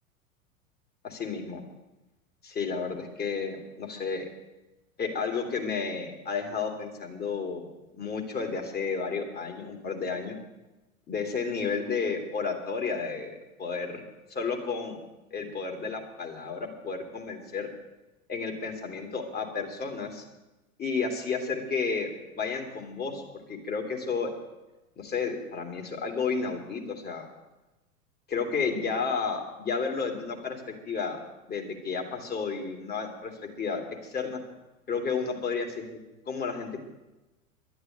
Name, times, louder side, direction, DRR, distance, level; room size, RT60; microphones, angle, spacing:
voice 1, 1.0-1.6 2.4-4.3 5.0-10.4 11.1-14.0 14.4-15.0 15.3-17.7 18.3-20.2 20.8-22.1 22.4-23.2 23.5-24.3 25.0-27.3 28.3-31.2 31.5-34.4 34.9-35.9 36.3-36.8, left 5 dB, 20° left, 3 dB, 2.7 m, -32 dB
11.5 x 10.5 x 9.1 m, 1.1 s
figure-of-eight pair, 90°, 42 cm